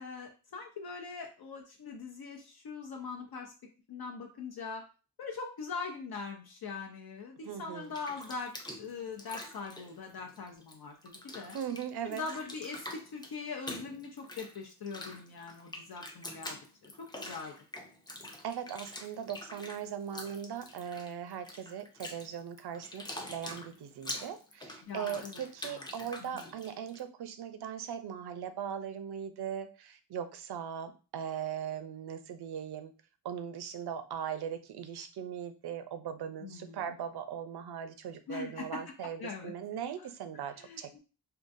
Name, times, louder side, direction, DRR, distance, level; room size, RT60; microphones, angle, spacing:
voice 1, 0.0-3.5 3.9-4.8 5.2-8.5 8.8-11.6 12.0-16.9 17.2-17.5 24.8-25.9 26.2-26.5 36.4-37.0 38.3-38.6 39.2-39.5 40.0-40.1 40.6-41.0, left 4 dB, 65° left, 1 dB, 0.6 m, -42 dB
voice 2, 7.4-7.9 11.5-12.2 18.4-32.9 33.2-41.0, right 8 dB, 70° right, 9 dB, 0.5 m, -39 dB
Bathtub (filling or washing), 7.7-10.7 11.0-27.0, left 1 dB, 10° left, 0.4 m, -45 dB
3.7 x 2.3 x 2.5 m, 0.34 s
wide cardioid pair, 155°, 40 cm